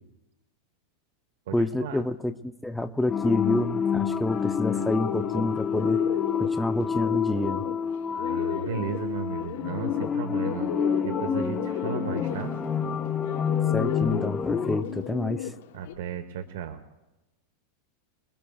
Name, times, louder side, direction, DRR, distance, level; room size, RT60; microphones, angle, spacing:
voice 1, 1.5-6.0 6.3-7.7 13.7-15.5, left 1 dB, 5° left, 8 dB, 0.5 m, -28 dB
sound 1, 3.1-14.8, left 7 dB, 20° left, 1.1 m, -28 dB
Bird, 4.3-15.9, left 11 dB, 70° left, 1.0 m, -35 dB
voice 2, 8.1-12.5 15.7-16.8, right 7 dB, 80° right, 7 dB, 1.1 m, -35 dB
26.5 x 21.0 x 2.4 m, 1.0 s
supercardioid pair, 150°, 0 cm